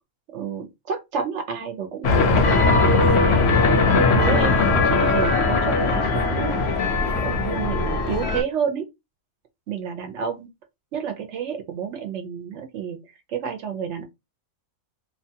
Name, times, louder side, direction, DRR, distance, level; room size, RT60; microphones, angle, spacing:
voice 1, 0.3-2.1 3.9-6.8 7.1-8.8 9.7-10.5 10.9-13.0 13.3-14.0, right 7 dB, 65° right, 0.8 m, -29 dB
sound 1, 2.0-8.4, left 3 dB, 60° left, 0.8 m, -19 dB
2.7 x 2.2 x 2.7 m
omnidirectional pair, 1.5 m